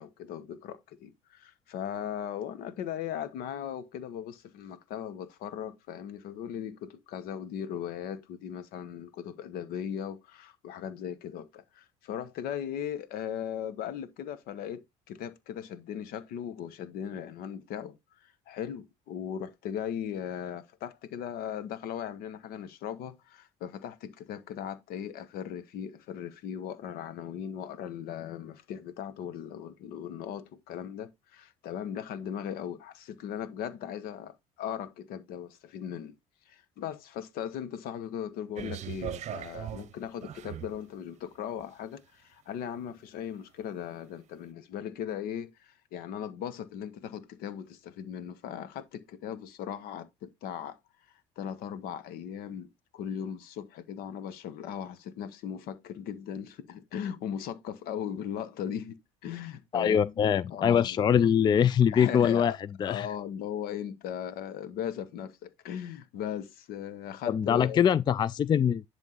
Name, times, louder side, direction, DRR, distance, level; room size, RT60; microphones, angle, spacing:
voice 1, 0.0-14.8 15.1-18.0 18.2-36.1 36.5-50.8 51.4-61.0 61.9-62.6 62.8-67.8, left 9 dB, 70° left, 1.2 m, -38 dB
sound 1, 38.6-40.8 41.6-41.7, right 11 dB, 45° right, 0.8 m, -39 dB
voice 2, 59.7-62.5 62.8-63.1 67.3-68.8, left 8 dB, 30° left, 0.3 m, -23 dB
11.0 x 3.6 x 4.0 m
supercardioid pair, 100°, 16 cm